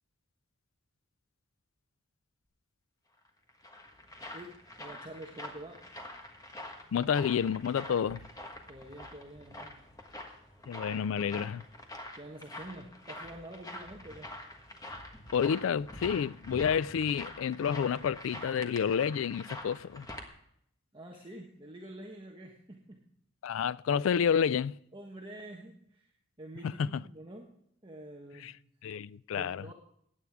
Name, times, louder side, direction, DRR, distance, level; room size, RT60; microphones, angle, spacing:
sound 1, 3.2-20.3, left 1 dB, 20° left, 1.4 m, -46 dB
voice 1, 4.3-5.8 8.7-9.8 10.1-10.5 10.9-11.5 12.1-14.3 20.9-23.0 24.9-26.1 26.4-27.5 27.8-28.5 29.3-29.7, right 1 dB, 25° right, 1.2 m, -47 dB
voice 2, 6.9-8.3 10.7-11.6 15.3-20.1 23.4-24.8 26.8-26.9 28.4-28.5 28.8-29.6, left 7 dB, 80° left, 0.3 m, -29 dB
16.5 x 9.6 x 3.5 m
head